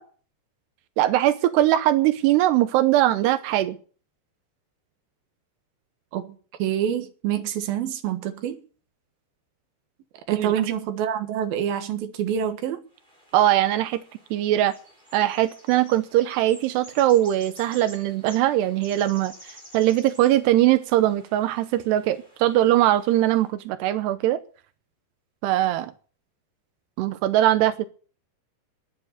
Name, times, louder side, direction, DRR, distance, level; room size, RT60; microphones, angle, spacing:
voice 1, 1.0-3.8 10.3-10.5 13.3-14.0 14.3-14.8 15.1-24.4 25.4-25.9 27.0-27.9, right 14 dB, 85° right, 3.0 m, -21 dB
voice 2, 6.1-8.6 10.3-12.8, right 9 dB, 70° right, 3.1 m, -27 dB
sound 1, 12.9-23.5, equal, 10° right, 5.3 m, -50 dB
14.0 x 10.5 x 6.8 m
omnidirectional pair, 4.6 m